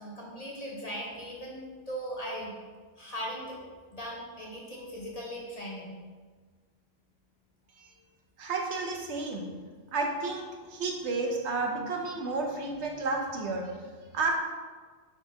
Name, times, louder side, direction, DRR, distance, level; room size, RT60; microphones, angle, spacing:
voice 1, 0.0-2.5 3.0-3.6 3.9-5.9, equal, 45° left, -3 dB, 0.6 m, -39 dB
voice 2, 8.4-9.5 9.9-13.7 14.1-14.3, right 3 dB, 70° right, 1 dB, 0.9 m, -31 dB
4.3 x 2.6 x 4.6 m, 1.5 s
omnidirectional pair, 1.2 m